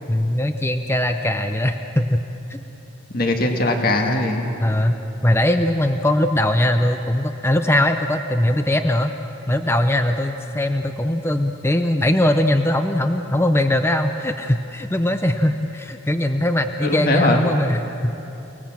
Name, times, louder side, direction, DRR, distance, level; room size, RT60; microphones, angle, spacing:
voice 1, 0.1-2.2 2.5-2.6 4.6-5.0 5.2-9.1 9.5-18.2, left 1 dB, 10° left, 7 dB, 0.7 m, -20 dB
voice 2, 3.1-4.6 16.8-17.4, left 1 dB, 50° left, 3 dB, 1.9 m, -20 dB
29.5 x 19.5 x 7.5 m, 3.0 s
head